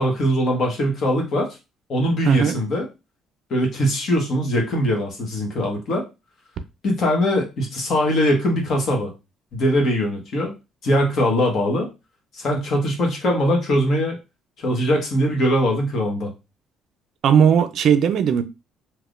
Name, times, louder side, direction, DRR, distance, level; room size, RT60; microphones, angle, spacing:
voice 1, 0.0-1.5 1.9-2.9 3.5-6.0 6.8-9.1 9.5-10.5 10.8-11.9 12.3-14.1 14.6-16.3, equal, 50° left, 1.2 m, -21 dB
voice 2, 2.2-2.6 17.2-18.4, right 8 dB, 55° right, 0.4 m, -17 dB
3.5 x 2.8 x 2.5 m
cardioid pair, 140°, 0 cm